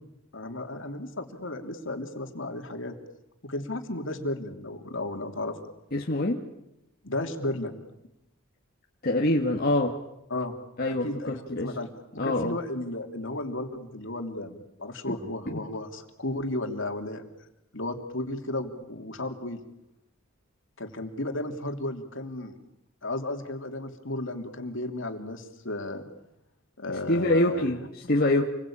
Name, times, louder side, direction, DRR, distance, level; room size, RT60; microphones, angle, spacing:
voice 1, 0.3-2.9 3.4-5.6 7.0-7.8 10.3-10.5 10.8-11.9 12.1-17.2 17.7-19.6 20.8-22.5 23.0-26.1 26.8-27.8, left 2 dB, 60° left, 5 dB, 3.1 m, -34 dB
voice 2, 5.9-6.4 9.0-9.9 10.8-11.7 12.2-12.5 15.1-15.2 15.5-15.6 27.1-27.8 28.1-28.5, left 1 dB, 45° left, 0 dB, 1.9 m, -25 dB
28.5 x 22.0 x 8.8 m, 0.88 s
head